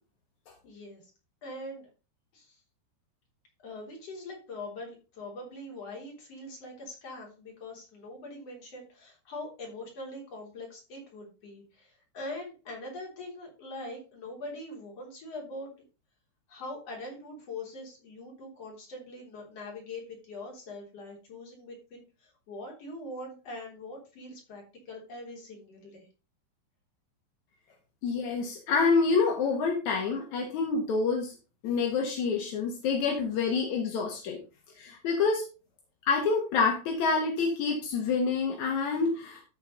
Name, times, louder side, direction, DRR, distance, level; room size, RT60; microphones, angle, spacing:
voice 1, 0.6-1.0 1.4-1.9 2.3-2.6 3.6-15.7 16.5-26.1, left 2 dB, 35° left, -1 dB, 4.1 m, -42 dB
voice 2, 28.0-31.3 31.6-34.4 34.8-35.4 36.1-39.4, left 4 dB, 60° left, 1 dB, 2.2 m, -27 dB
14.0 x 5.2 x 3.9 m, 0.33 s
omnidirectional pair, 5.0 m